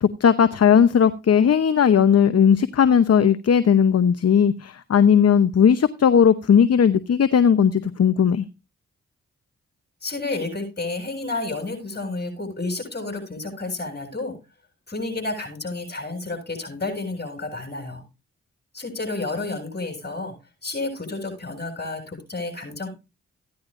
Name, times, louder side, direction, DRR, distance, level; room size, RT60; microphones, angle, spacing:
voice 1, 0.0-8.5, left 7 dB, 55° left, 0.8 m, -17 dB
voice 2, 10.0-14.3 14.9-18.0 18.7-20.3 20.6-22.9, left 2 dB, 35° left, 7.6 m, -30 dB
16.0 x 10.5 x 2.5 m
supercardioid pair, 40°, 31 cm